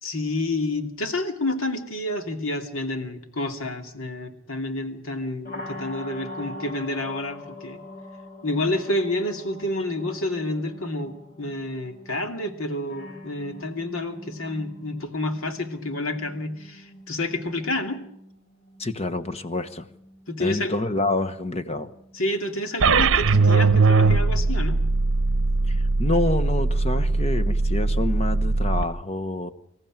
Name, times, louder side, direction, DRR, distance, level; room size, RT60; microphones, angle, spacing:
voice 1, 0.0-7.8 8.4-11.1 11.4-18.0 20.3-20.8 22.1-24.8, left 1 dB, 75° left, 6 dB, 2.6 m, -29 dB
sound 1, 5.4-25.3, left 1 dB, 45° left, 3.3 m, -44 dB
voice 2, 18.8-19.9 20.4-21.9 25.7-29.5, left 2 dB, 30° left, 11 dB, 1.1 m, -27 dB
sound 2, 22.8-28.8, right 3 dB, 65° right, 0.8 m, -20 dB
26.0 x 14.5 x 9.0 m, 0.78 s
head